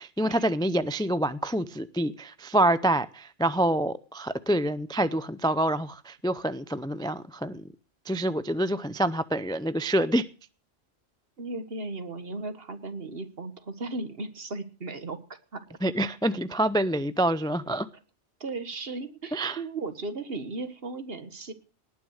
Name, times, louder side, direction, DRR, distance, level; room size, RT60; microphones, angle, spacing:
voice 1, 0.0-7.6 8.1-10.3 15.8-17.9 19.3-19.6, right 1 dB, 5° left, 14 dB, 0.4 m, -26 dB
voice 2, 11.4-15.2 15.5-15.6 18.4-21.5, right 3 dB, 60° right, 10 dB, 1.7 m, -36 dB
19.0 x 9.7 x 6.5 m, 0.38 s
omnidirectional pair, 1.1 m